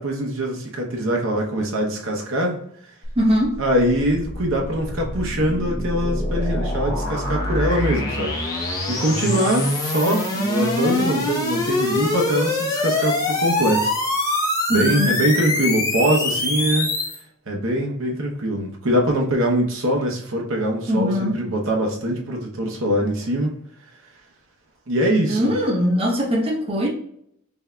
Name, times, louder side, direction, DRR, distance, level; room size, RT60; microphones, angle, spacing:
voice 1, 0.0-2.6 3.6-8.3 8.9-13.9 14.7-16.9 17.5-23.5 24.9-25.5, right 1 dB, 60° right, 0 dB, 0.8 m, -23 dB
sound 1, 3.0-17.2, left 2 dB, 15° left, 0.8 m, -24 dB
voice 2, 3.2-3.6 14.7-15.2 20.9-21.4 25.3-26.9, equal, 25° right, -2 dB, 0.8 m, -21 dB
5.7 x 2.7 x 2.2 m, 0.68 s
head